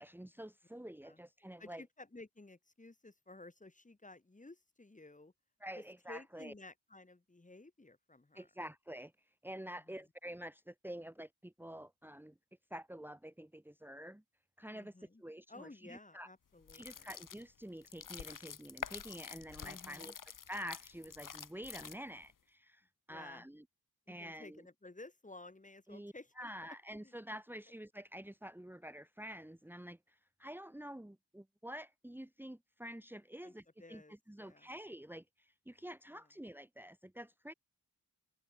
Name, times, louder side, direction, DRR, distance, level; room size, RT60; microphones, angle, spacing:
voice 1, 0.0-1.8 5.6-6.5 8.3-9.1 9.4-12.3 12.7-14.2 14.6-14.9 15.2-16.3 16.7-23.6 24.1-24.6 25.9-37.5, equal, 5° right, 2.2 m, -48 dB
voice 2, 1.6-5.3 5.8-8.5 9.7-10.0 14.7-15.2 15.5-17.1 19.6-20.1 23.1-23.5 24.1-27.1 33.4-33.5 33.8-34.7 36.2-36.3, left 2 dB, 20° left, 3.5 m, -55 dB
sound 1, 16.6-22.3, left 7 dB, 55° left, 1.3 m, -48 dB
open air
wide cardioid pair, 175°, 39 cm